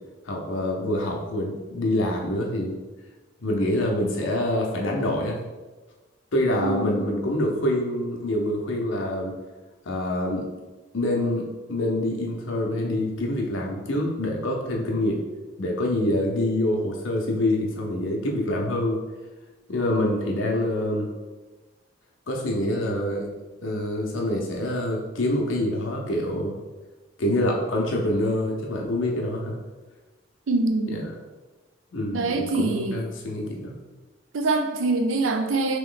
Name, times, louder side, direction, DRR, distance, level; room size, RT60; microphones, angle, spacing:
voice 1, 0.3-2.7 3.4-5.4 6.3-9.3 9.8-10.5 10.9-15.2 15.6-19.0 19.7-21.1 22.3-23.3 23.6-26.5 27.2-29.6 30.9-31.0 31.9-33.8, left 1 dB, 80° left, 0 dB, 0.7 m, -26 dB
voice 2, 6.6-7.0 30.5-31.0 32.1-33.0 34.3-35.8, right 3 dB, 80° right, 5 dB, 0.5 m, -24 dB
3.1 x 3.0 x 3.8 m, 1.2 s
head